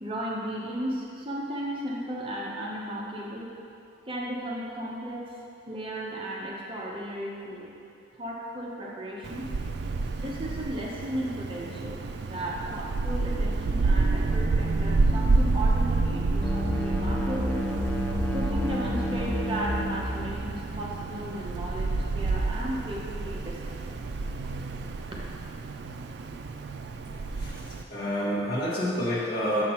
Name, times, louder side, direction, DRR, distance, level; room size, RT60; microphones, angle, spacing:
voice 1, 0.0-3.5 4.1-5.3 5.7-7.7 8.2-9.4 10.2-17.6 18.3-23.8, equal, 25° right, -4 dB, 0.8 m, -35 dB
Wind, 9.2-27.8, right 3 dB, 65° right, 0.3 m, -29 dB
sound 1, 16.4-20.5, left 1 dB, 5° left, 0.4 m, -30 dB
voice 2, 27.9-29.6, equal, 55° left, -8 dB, 1.5 m, -28 dB
6.6 x 5.9 x 4.3 m, 2.6 s
head